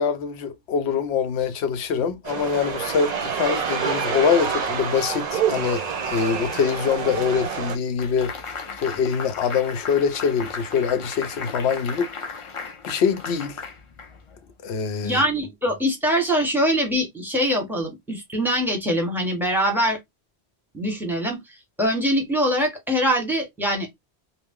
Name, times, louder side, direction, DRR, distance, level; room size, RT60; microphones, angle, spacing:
voice 1, 0.0-8.3 8.8-12.1 12.8-13.6 14.6-15.2, left 6 dB, 85° left, 0.9 m, -24 dB
sound 1, 2.2-7.8, right 6 dB, 50° right, 0.6 m, -27 dB
sound 2, 8.0-14.4, left 5 dB, 45° left, 0.4 m, -36 dB
voice 2, 15.0-20.0 20.7-21.4 21.8-24.0, equal, ahead, 0.9 m, -23 dB
2.5 x 2.0 x 3.5 m
omnidirectional pair, 1.1 m